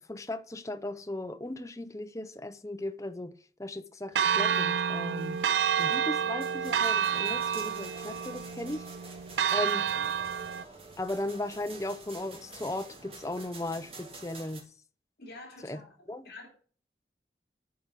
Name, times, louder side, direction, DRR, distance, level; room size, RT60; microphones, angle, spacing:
voice 1, 0.1-3.3 3.6-5.4 5.8-8.8 9.5-9.9 11.0-14.6 15.6-15.8 16.1-16.2, left 1 dB, 20° left, 0.6 m, -36 dB
Church bell, 4.1-10.6, right 8 dB, 80° right, 0.4 m, -29 dB
sound 1, 4.2-14.6, right 3 dB, 35° right, 2.2 m, -49 dB
voice 2, 15.2-16.5, left 2 dB, 60° left, 2.8 m, -48 dB
9.5 x 5.3 x 7.4 m
head